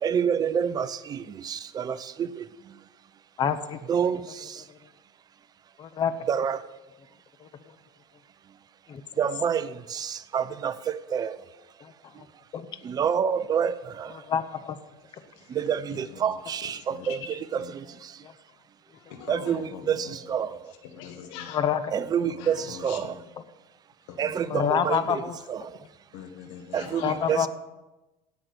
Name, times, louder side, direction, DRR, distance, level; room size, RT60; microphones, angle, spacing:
voice 1, 0.0-2.8 3.8-4.7 6.3-6.7 9.2-11.5 12.1-12.2 12.8-14.3 15.5-18.3 19.3-20.7 21.9-23.3 24.2-25.2 25.5-25.9 26.7-27.5, right 8 dB, 25° right, 0.6 m, -28 dB
voice 2, 3.4-3.8 5.8-6.1 7.4-7.5 8.9-9.0 11.8-11.9 12.5-12.7 14.2-14.8 18.2-18.3 21.5-21.9 24.5-25.4 27.0-27.5, left 8 dB, 30° left, 0.8 m, -27 dB
voice 3, 19.1-19.8 20.9-21.6 22.4-22.5 22.9-23.0 24.1-24.2 26.1-27.2, left 8 dB, 80° left, 1.5 m, -41 dB
16.5 x 6.0 x 6.8 m
supercardioid pair, 130°, 15 cm